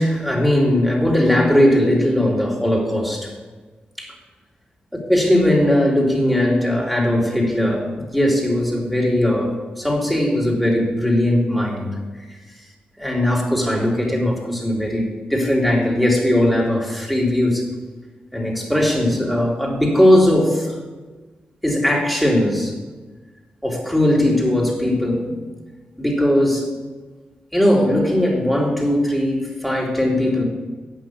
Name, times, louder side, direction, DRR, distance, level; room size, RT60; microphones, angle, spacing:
voice 1, 0.0-3.3 4.0-4.1 5.1-11.9 13.0-17.7 18.3-20.7 21.6-22.7 23.6-25.4 26.0-26.7 27.5-30.4, left 1 dB, ahead, -2 dB, 3.4 m, -19 dB
8.5 x 6.2 x 8.1 m, 1.3 s
cardioid pair, 50°, 4 cm